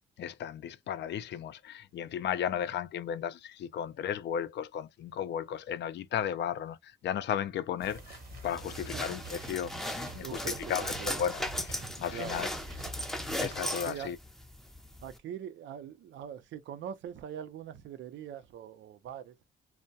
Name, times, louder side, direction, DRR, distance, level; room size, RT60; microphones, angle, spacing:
voice 1, 0.2-8.2 8.4-10.4 10.7-12.5 13.4-14.2, left 9 dB, 60° left, 0.5 m, -35 dB
sound 1, 7.8-15.2, left 1 dB, ahead, 0.5 m, -38 dB
sound 2, 7.8-13.9, right 6 dB, 50° right, 1.0 m, -48 dB
voice 2, 10.2-11.2 12.1-12.5 13.8-14.1 15.0-19.3, right 9 dB, 70° right, 0.6 m, -43 dB
2.2 x 2.1 x 2.6 m
cardioid pair, 90°, 20 cm